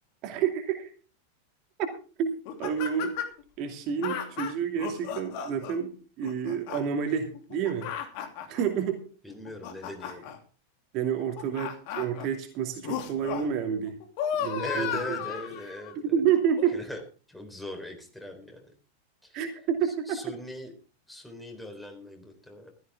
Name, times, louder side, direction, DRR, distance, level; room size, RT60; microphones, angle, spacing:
voice 1, 0.2-0.9 1.8-1.9 2.2-3.1 3.6-7.9 8.5-9.0 10.9-14.0 14.4-15.2 16.0-16.8 19.3-20.2, right 8 dB, 40° right, 3 dB, 2.6 m, -29 dB
sound 1, 2.5-3.4 4.0-5.8 6.2-6.8 7.3-8.6 9.3-10.4 11.2-12.3 12.8-13.5 13.8-15.9 16.6-16.7, left 8 dB, 45° left, 2.7 m, -34 dB
voice 2, 9.2-10.3 14.6-16.2 16.7-17.0 17.3-18.7 19.2-19.4 19.8-20.7 21.1-22.7, left 1 dB, 5° left, 3 dB, 4.0 m, -40 dB
15.5 x 13.5 x 3.6 m, 0.38 s
figure-of-eight pair, 90°, 0 cm